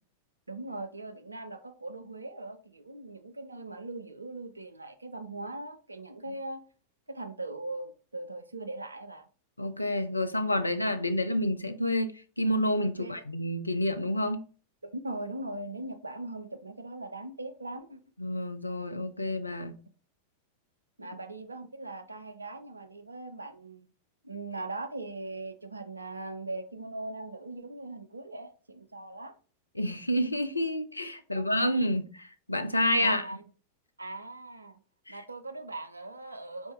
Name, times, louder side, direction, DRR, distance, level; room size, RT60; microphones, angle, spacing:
voice 1, 0.5-6.7 7.1-9.3 13.0-13.2 14.8-18.0 21.0-23.9 24.2-29.4 31.3-31.5 33.0-33.4 34.0-34.8 35.1-36.7, right 2 dB, 80° right, 0.4 m, -40 dB
voice 2, 9.6-14.4 18.2-19.8 29.7-33.2 35.1-35.2, left 1 dB, 85° left, 0.4 m, -29 dB
4.2 x 2.6 x 3.3 m
figure-of-eight pair, 90°, 0 cm